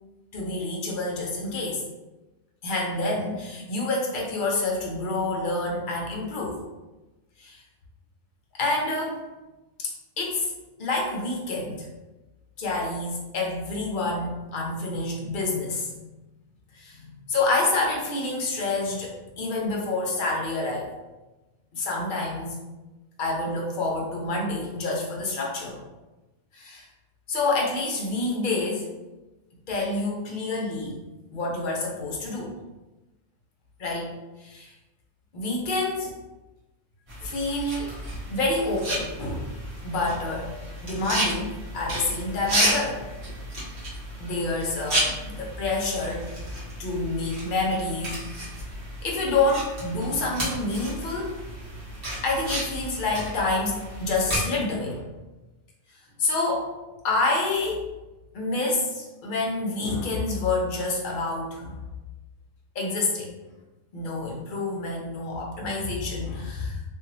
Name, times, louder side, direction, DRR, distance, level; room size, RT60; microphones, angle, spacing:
voice 1, 0.3-1.8 2.6-6.6 7.4-7.6 8.6-9.2 9.8-10.5 10.8-11.9 12.6-15.9 16.7-20.9 21.7-22.6 23.2-25.8 26.5-26.9 27.3-28.9 29.7-31.0 31.3-32.5 33.8-34.7 35.3-36.2 37.2-38.0 38.3-39.5 39.8-40.5 40.8-43.0 44.2-48.2 49.0-51.4 52.2-55.1 56.2-56.7 57.0-57.9 58.3-61.8 62.7-63.3 63.9-66.8, left 2 dB, 50° left, -2 dB, 0.6 m, -28 dB
sound 1, 37.1-54.4, right 1 dB, 45° right, 1.3 m, -32 dB
2.8 x 2.6 x 2.6 m, 1.1 s
omnidirectional pair, 1.4 m